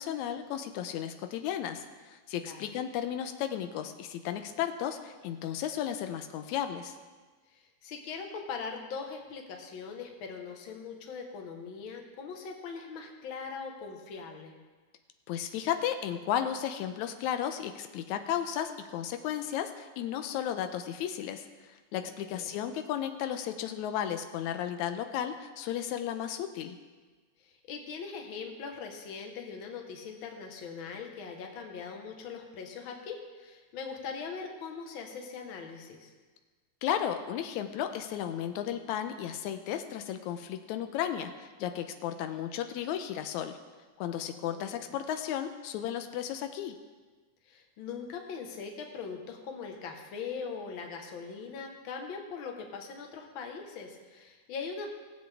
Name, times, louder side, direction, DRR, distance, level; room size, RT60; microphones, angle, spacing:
voice 1, 0.0-7.0 15.3-21.5 21.9-26.8 36.8-43.6 44.0-46.8, left 10 dB, 90° left, 7 dB, 2.0 m, -34 dB
voice 2, 2.4-2.8 7.5-14.6 22.0-22.7 27.4-36.1 44.3-44.9 47.4-54.9, left 5 dB, 55° left, 3 dB, 1.6 m, -41 dB
18.0 x 7.7 x 3.4 m, 1.4 s
omnidirectional pair, 3.3 m